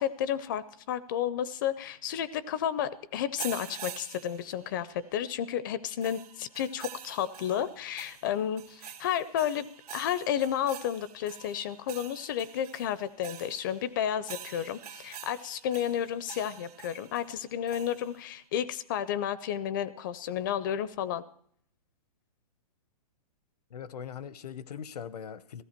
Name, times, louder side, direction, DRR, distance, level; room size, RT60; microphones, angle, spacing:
voice 1, 0.0-9.7 9.9-21.2, left 9 dB, 35° left, 17 dB, 0.4 m, -32 dB
sound 1, 3.4-5.0 6.0-18.3, right 9 dB, 75° right, 1.9 m, -47 dB
voice 2, 23.7-25.6, left 8 dB, 80° left, 17 dB, 0.8 m, -41 dB
15.5 x 14.0 x 4.4 m, 0.63 s
hypercardioid pair, 160°, 20 cm